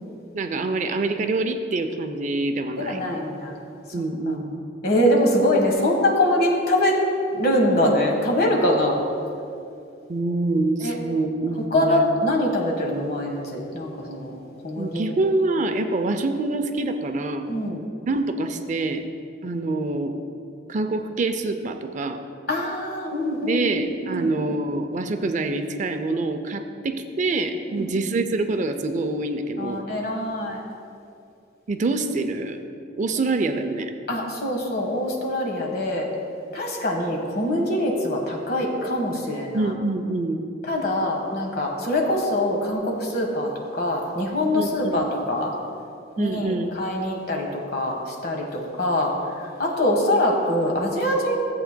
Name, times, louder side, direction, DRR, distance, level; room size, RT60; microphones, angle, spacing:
voice 1, 0.3-3.0 3.9-4.6 10.1-12.0 14.8-17.5 18.1-19.0 19.4-20.2 20.7-22.2 23.4-29.8 31.7-32.6 33.0-33.9 39.5-40.4 44.5-45.0 46.2-46.7, right 2 dB, 40° right, 7 dB, 0.4 m, -25 dB
voice 2, 2.8-3.5 4.3-4.4 4.8-7.0 7.3-9.0 10.8-11.0 11.7-14.3 14.6-15.1 17.5-17.9 22.5-24.3 27.7-27.9 29.6-30.6 34.1-36.1 36.5-39.7 40.7-45.5 46.2-49.1 49.4-51.4, left 1 dB, 55° left, 0 dB, 1.4 m, -24 dB
14.0 x 7.9 x 2.2 m, 2.5 s
head